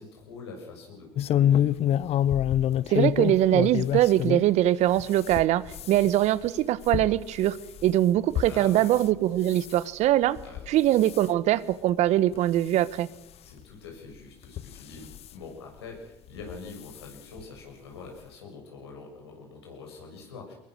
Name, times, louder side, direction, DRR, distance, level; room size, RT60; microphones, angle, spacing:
voice 1, 0.0-1.8 8.4-9.0 10.4-10.7 13.4-20.5, left 4 dB, 85° left, 1 dB, 6.9 m, -44 dB
sound 1, 1.2-4.5 4.9-9.1 9.4-9.8 10.4-10.7 11.0-11.3 11.9-12.0 12.3-12.4 13.6-13.7 14.4-15.3 16.4-16.6 16.9-17.0 17.4-17.5, left 11 dB, 50° left, 0.7 m, -27 dB
voice 2, 2.9-7.6 7.8-10.4 10.7-13.1, right 13 dB, 60° right, 17 dB, 1.1 m, -22 dB
23.5 x 21.0 x 6.5 m, 0.93 s
hypercardioid pair, 70°, 13 cm